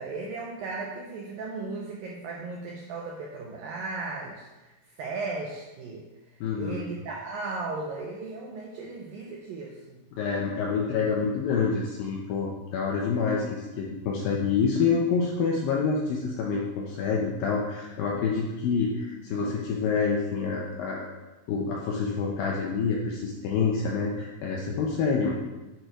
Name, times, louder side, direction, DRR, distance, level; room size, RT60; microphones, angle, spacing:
voice 1, 0.0-4.7 5.0-6.1 6.6-10.0, right 3 dB, 80° right, -1 dB, 2.0 m, -36 dB
voice 2, 6.4-6.8 10.1-21.1 21.5-25.3, left 5 dB, 75° left, -2 dB, 2.1 m, -27 dB
9.1 x 4.5 x 5.0 m, 1.1 s
omnidirectional pair, 5.0 m